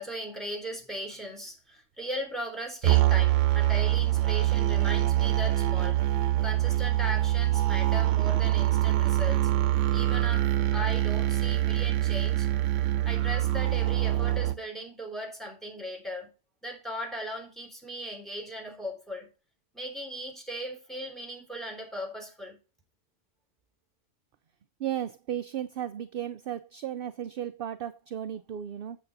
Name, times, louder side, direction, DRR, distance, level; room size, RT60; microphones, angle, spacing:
voice 1, 0.0-6.0 6.4-9.5 9.9-12.5 13.0-16.3 16.6-19.3 19.7-22.6, equal, ahead, 3.4 m, -38 dB
sound 1, 2.8-14.5, right 14 dB, 85° right, 0.9 m, -25 dB
voice 2, 24.8-29.0, right 10 dB, 60° right, 0.7 m, -35 dB
9.0 x 7.2 x 4.1 m
omnidirectional pair, 1.2 m